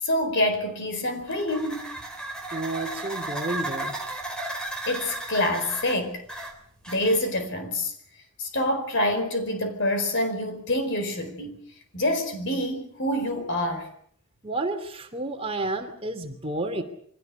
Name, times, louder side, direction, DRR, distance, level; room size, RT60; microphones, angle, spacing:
voice 1, 0.0-1.9 4.9-6.2 6.9-7.9 8.4-11.6 11.9-13.9, left 1 dB, 55° left, 8 dB, 4.7 m, -26 dB
sound 1, 1.2-7.4, right 2 dB, 5° left, 3.4 m, -35 dB
voice 2, 2.5-3.9 14.4-16.8, right 2 dB, 25° right, 5 dB, 2.9 m, -31 dB
24.5 x 17.5 x 8.2 m, 0.64 s
head